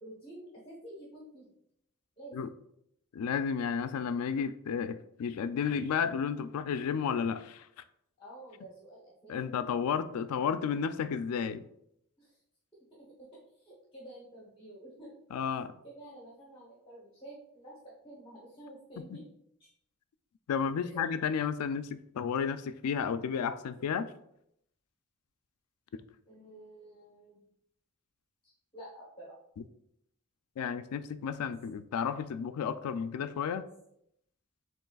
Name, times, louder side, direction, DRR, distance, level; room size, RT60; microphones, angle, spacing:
voice 1, 0.0-1.5 2.2-2.3 8.2-9.3 12.2-12.4 13.1-13.2 13.6-15.2 15.8-17.7 18.0-19.2 19.6-19.7 20.8-21.0 26.3-27.4 28.4-29.3, right 1 dB, 25° left, -5 dB, 1.0 m, -50 dB
voice 2, 3.1-7.7 9.3-11.6 15.3-15.7 20.5-24.1 30.6-33.7, left 7 dB, 90° left, 12 dB, 0.3 m, -32 dB
7.2 x 3.1 x 2.3 m, 0.75 s
head